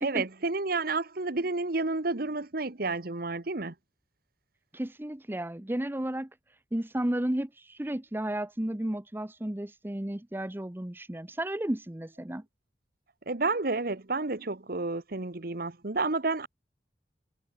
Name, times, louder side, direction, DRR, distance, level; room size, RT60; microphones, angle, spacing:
voice 1, 0.0-3.7 13.3-16.5, right 3 dB, 55° right, 1.3 m, -30 dB
voice 2, 4.7-6.3 6.7-12.4, right 1 dB, 10° right, 0.7 m, -33 dB
head